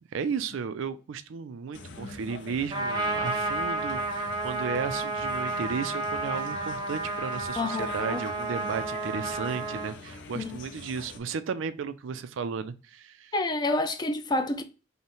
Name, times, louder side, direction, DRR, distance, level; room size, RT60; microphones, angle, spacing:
voice 1, 0.1-13.3, right 6 dB, 70° right, 0.4 m, -34 dB
sound 1, 1.7-11.2, left 3 dB, 65° left, 0.6 m, -45 dB
Trumpet, 2.7-9.9, right 2 dB, 20° right, 0.7 m, -31 dB
voice 2, 7.6-8.2 10.4-10.6 13.3-14.6, left 2 dB, 20° left, 0.4 m, -28 dB
5.4 x 2.1 x 3.0 m
head